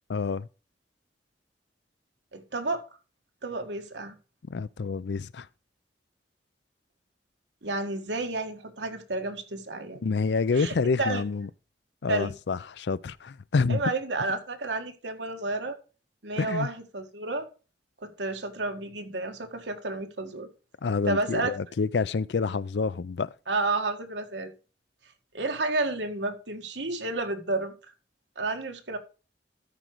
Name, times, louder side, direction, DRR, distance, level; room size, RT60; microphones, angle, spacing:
voice 1, 0.1-0.5 4.5-5.5 10.0-11.5 12.0-13.8 16.4-16.7 20.8-23.3, left 4 dB, 75° left, 0.5 m, -28 dB
voice 2, 2.3-2.8 3.4-4.2 7.6-10.1 10.5-11.2 12.1-12.3 13.7-15.8 16.2-17.5 18.0-20.5 21.0-21.5 23.5-24.5 25.3-27.7 28.3-29.0, right 2 dB, 90° right, 1.7 m, -31 dB
13.0 x 5.1 x 4.6 m
head